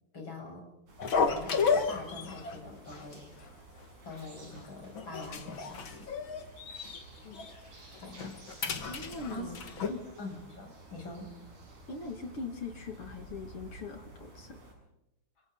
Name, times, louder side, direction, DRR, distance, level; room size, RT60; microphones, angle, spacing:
voice 1, 0.1-0.6 1.3-3.2 4.0-6.5 8.0-8.3 9.3-9.5 10.2-11.3, left 2 dB, 25° left, 1 dB, 8.1 m, -44 dB
sound 1, 0.9-14.7, right 2 dB, 40° right, 8.1 m, -52 dB
sound 2, 1.0-2.6 2.9-3.1 3.4-3.5 4.1-4.6 4.9-7.0 7.3-7.5 8.0-9.9, left 5 dB, 70° left, 1.1 m, -32 dB
voice 2, 8.9-9.6 9.9-10.1 11.9-14.6, left 4 dB, 40° left, 5 dB, 2.1 m, -41 dB
29.5 x 25.5 x 4.0 m, 0.91 s
omnidirectional pair, 5.5 m